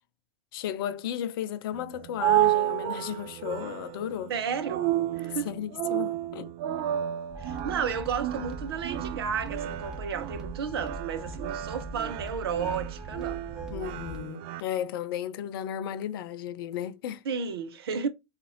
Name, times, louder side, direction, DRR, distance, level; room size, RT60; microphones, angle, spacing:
voice 1, 0.5-4.3 5.5-6.5 13.7-17.2, left 10 dB, 65° left, 0.5 m, -34 dB
sound 1, 1.7-14.6, right 13 dB, 45° right, 0.4 m, -31 dB
voice 2, 4.3-4.9 5.1-5.5 7.4-13.4 17.2-18.1, right 6 dB, 75° right, 0.7 m, -32 dB
sound 2, 7.3-14.2, right 2 dB, 5° right, 1.3 m, -41 dB
4.0 x 2.5 x 2.7 m
hypercardioid pair, 90°, 13 cm